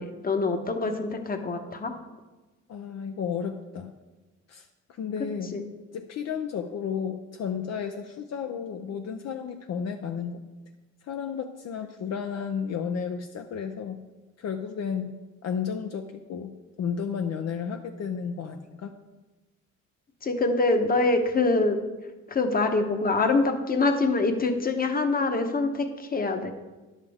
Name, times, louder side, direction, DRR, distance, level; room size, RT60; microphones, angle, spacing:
voice 1, 0.0-1.9 5.5-5.6 20.2-21.8 22.3-26.5, left 3 dB, 30° left, 6 dB, 1.0 m, -25 dB
voice 2, 2.7-3.9 4.5-5.6 5.9-10.4 11.1-14.0 14.4-16.5 16.8-18.9, left 7 dB, 60° left, 5 dB, 0.6 m, -33 dB
10.5 x 7.4 x 3.5 m, 1.2 s
cardioid pair, 90°, 30 cm